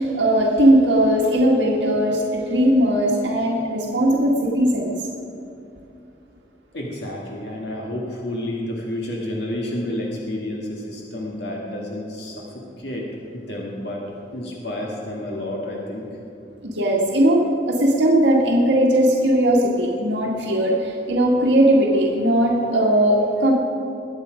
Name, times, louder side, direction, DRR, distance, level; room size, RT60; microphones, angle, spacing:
voice 1, 0.0-4.9 16.6-23.5, right 1 dB, 85° right, -2 dB, 1.8 m, -18 dB
voice 2, 6.7-16.1, left 1 dB, 70° left, -2 dB, 1.9 m, -30 dB
22.0 x 8.5 x 5.1 m, 2.7 s
head